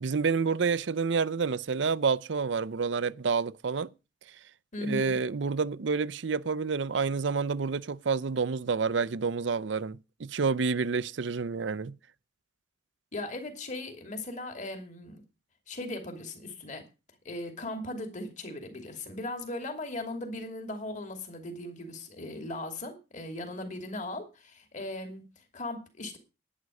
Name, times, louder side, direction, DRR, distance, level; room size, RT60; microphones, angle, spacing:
voice 1, 0.0-3.9 4.8-11.9, right 5 dB, 70° right, 0.6 m, -29 dB
voice 2, 4.7-5.2 13.1-15.2 15.7-16.8 17.2-26.2, left 2 dB, 40° left, 2.7 m, -38 dB
11.0 x 9.7 x 6.4 m
head